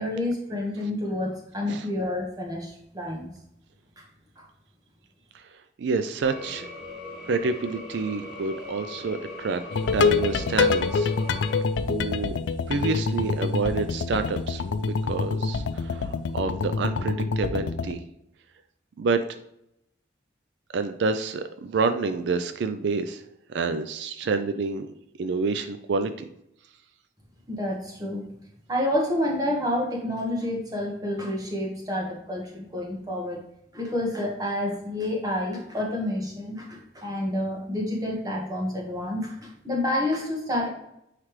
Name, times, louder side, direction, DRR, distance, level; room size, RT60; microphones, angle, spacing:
voice 1, 0.0-3.3 4.0-4.1 4.4-4.5 27.5-28.3 28.7-33.4 33.7-40.7, left 1 dB, 20° right, -1 dB, 1.3 m, -29 dB
voice 2, 5.8-6.7 7.3-11.1 11.9-12.4 12.7-18.0 19.0-19.2 20.7-23.2 23.5-24.9 25.2-26.3, right 4 dB, 75° right, 9 dB, 0.4 m, -28 dB
sound 1, 6.2-11.6, left 2 dB, 5° right, 2.2 m, -40 dB
sound 2, 9.7-17.9, left 4 dB, 85° left, 0.4 m, -26 dB
9.4 x 3.3 x 3.2 m, 0.79 s
head